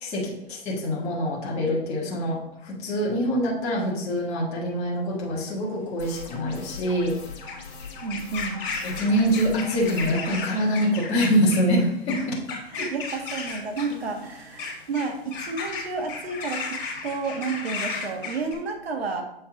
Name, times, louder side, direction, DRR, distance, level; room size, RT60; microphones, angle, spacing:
voice 1, 0.0-7.2 8.8-12.4 12.7-12.9, equal, 20° left, -4 dB, 1.5 m, -25 dB
sound 1, 5.2-18.5, left 4 dB, 60° left, 1.9 m, -35 dB
sound 2, 6.0-10.4, left 5 dB, 45° left, 1.7 m, -41 dB
voice 2, 8.0-8.7 12.7-19.2, right 4 dB, 75° right, 4 dB, 1.5 m, -31 dB
7.4 x 4.3 x 3.8 m, 0.80 s
hypercardioid pair, 140°, 31 cm